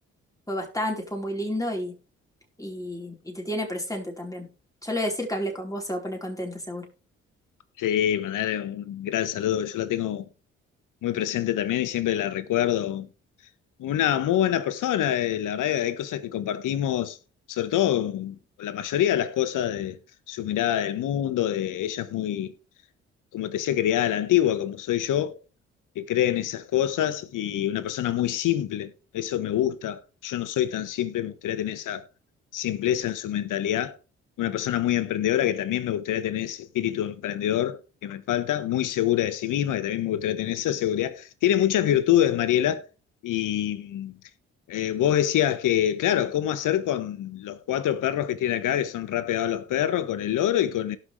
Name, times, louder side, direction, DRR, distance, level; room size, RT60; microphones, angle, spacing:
voice 1, 0.5-2.0 2.6-4.5 4.8-6.9, equal, 10° left, 4.5 m, -31 dB
voice 2, 7.8-10.2 11.0-13.1 13.8-17.2 17.5-20.0 20.3-22.5 23.3-25.4 25.9-32.0 32.5-34.0 34.4-42.8 43.2-44.2 44.7-51.0, left 11 dB, 65° left, 1.2 m, -26 dB
17.5 x 6.0 x 3.4 m
hypercardioid pair, 45°, 33 cm